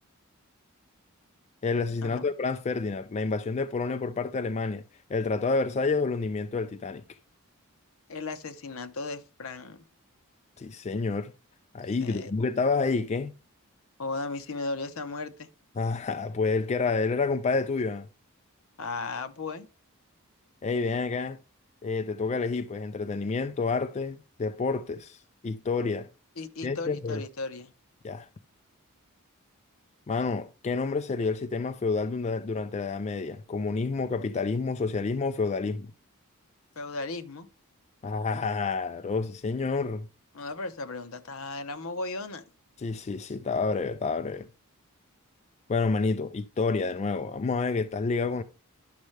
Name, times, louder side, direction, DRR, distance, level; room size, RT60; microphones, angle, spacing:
voice 1, 1.6-4.8 5.1-7.0 10.6-11.3 11.7-13.3 15.8-18.1 20.6-21.4 21.8-26.1 26.6-27.2 28.0-28.3 30.1-35.9 38.0-40.1 42.8-44.5 45.7-48.4, left 4 dB, 30° left, 0.3 m, -29 dB
voice 2, 8.1-9.8 12.0-12.3 14.0-15.5 18.8-19.7 26.4-27.7 36.8-37.5 40.3-42.4, left 3 dB, 70° left, 0.8 m, -36 dB
10.0 x 6.4 x 3.2 m
head